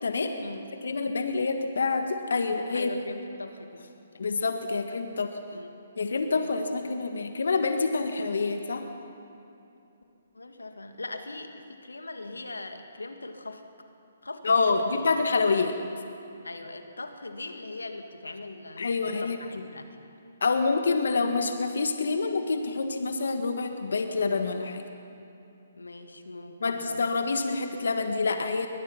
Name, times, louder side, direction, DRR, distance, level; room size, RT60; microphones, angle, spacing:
voice 1, 0.0-0.4 0.8-2.9 4.2-5.4 6.0-8.9 14.4-15.8 18.8-19.4 20.4-24.8 26.6-28.7, left 4 dB, 70° left, 6 dB, 1.6 m, -27 dB
voice 2, 2.7-3.9 5.5-5.7 10.3-13.6 14.2-15.1 16.4-19.9 25.8-27.0, left 2 dB, 90° left, 6 dB, 2.0 m, -40 dB
23.0 x 19.5 x 5.8 m, 2.8 s
figure-of-eight pair, 140°, 0 cm